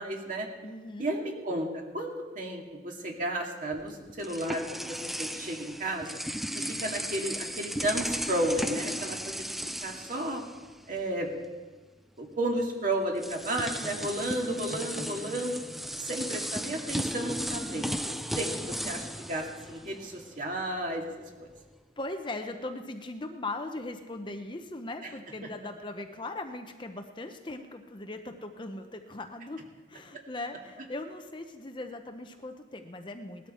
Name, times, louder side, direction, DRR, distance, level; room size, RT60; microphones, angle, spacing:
voice 1, 0.0-0.5 1.0-6.1 6.5-9.5 9.8-10.4 10.9-11.3 12.2-15.6 16.0-21.1 21.4-21.5, right 1 dB, 45° right, 1 dB, 2.2 m, -33 dB
voice 2, 0.6-1.1 22.0-29.6 29.9-33.5, left 2 dB, 25° left, 6 dB, 0.7 m, -39 dB
sound 1, 3.7-11.0 11.3-11.5 12.6-12.7 13.2-20.3, equal, ahead, 0.3 m, -36 dB
18.5 x 13.0 x 4.3 m, 1.3 s
head